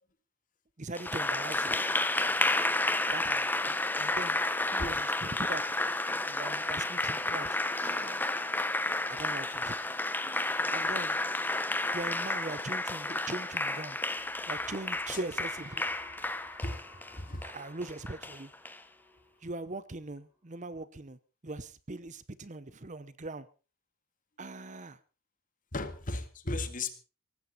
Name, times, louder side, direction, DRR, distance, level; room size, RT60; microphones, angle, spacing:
voice 1, 0.8-1.8 3.1-4.4 4.7-5.6 6.2-8.2 9.1-9.8 10.7-11.1 11.9-14.0 14.5-15.8 17.4-18.5 19.4-21.2 21.4-23.5 24.4-25.0, right 2 dB, 35° right, 0.9 m, -41 dB
Applause, 0.9-18.8, left 2 dB, 10° left, 0.8 m, -31 dB
sound 1, 14.2-20.0, left 1 dB, 15° right, 6.0 m, -57 dB
voice 2, 17.1-17.5 25.7-26.9, left 2 dB, 40° left, 2.0 m, -35 dB
18.5 x 15.5 x 4.2 m
head